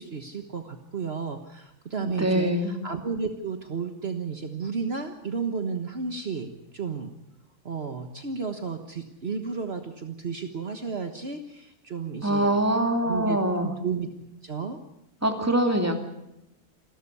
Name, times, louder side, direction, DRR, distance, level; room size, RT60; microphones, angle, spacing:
voice 1, 0.0-7.1 7.6-12.5 13.0-14.1 14.4-14.8, right 5 dB, 50° right, 6 dB, 1.6 m, -33 dB
voice 2, 2.0-2.7 12.2-13.7 15.2-16.0, right 1 dB, 10° right, 4 dB, 2.6 m, -24 dB
28.5 x 13.0 x 8.5 m, 0.88 s
omnidirectional pair, 1.4 m